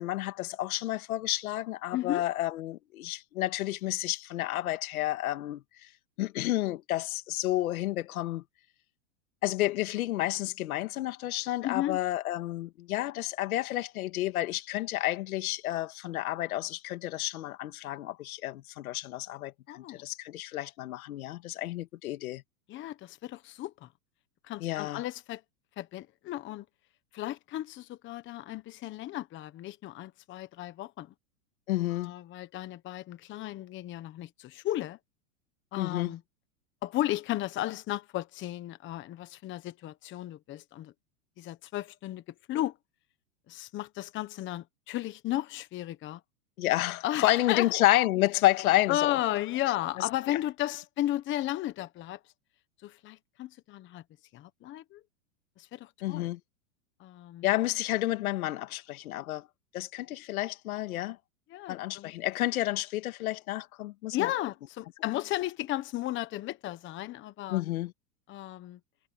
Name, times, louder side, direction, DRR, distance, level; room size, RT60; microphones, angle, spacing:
voice 1, 0.0-5.9 6.2-8.4 9.4-22.4 24.6-25.0 31.7-32.1 35.8-36.1 46.6-49.2 56.0-56.4 57.4-59.5 59.7-61.2 61.7-64.3 67.5-67.9, left 15 dB, 75° left, 2.1 m, -30 dB
voice 2, 1.9-2.2 11.6-12.0 19.7-20.0 22.7-23.9 24.5-25.4 25.8-26.6 27.1-31.1 31.9-35.0 35.7-36.2 36.8-40.9 41.4-42.2 42.5-42.7 43.5-46.2 47.0-47.7 48.9-52.2 52.8-54.0 54.3-55.0 55.6-56.3 57.0-57.5 61.5-62.1 64.1-67.6 68.3-68.8, left 14 dB, 25° left, 1.2 m, -34 dB
supercardioid pair, 140°, 44 cm